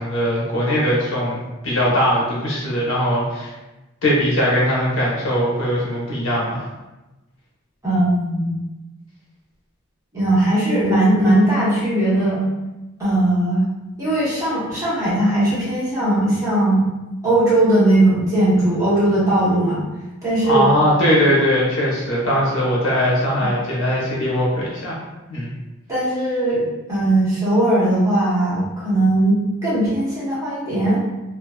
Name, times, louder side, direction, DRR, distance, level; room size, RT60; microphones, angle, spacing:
voice 1, 0.0-3.5 4.0-6.6 20.5-25.0 25.3-25.5, equal, 70° left, -5 dB, 0.9 m, -20 dB
voice 2, 7.8-8.6 10.1-12.4 13.0-13.6 14.0-16.8 17.2-19.8 20.2-20.7 25.9-26.6 26.9-31.0, right 1 dB, 15° right, -11 dB, 1.2 m, -18 dB
2.8 x 2.6 x 2.2 m, 1.1 s
head